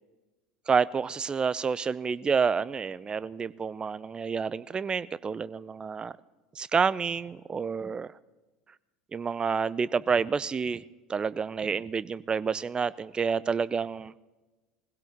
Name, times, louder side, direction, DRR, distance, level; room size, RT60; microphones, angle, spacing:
voice 1, 0.7-6.1 6.6-8.1 9.1-10.8 11.1-14.1, right 5 dB, 25° right, 18 dB, 0.6 m, -29 dB
21.5 x 16.5 x 3.6 m, 1.2 s
figure-of-eight pair, 70°, 4 cm